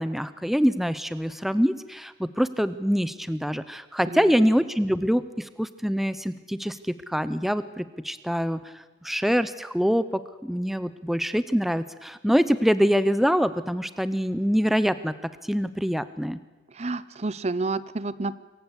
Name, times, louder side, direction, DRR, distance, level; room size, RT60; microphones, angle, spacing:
voice 1, 0.0-8.6 9.0-16.4, equal, ahead, 14 dB, 0.6 m, -25 dB
voice 2, 16.7-18.4, right 3 dB, 35° right, 17 dB, 0.7 m, -30 dB
26.0 x 15.5 x 8.1 m, 1.2 s
head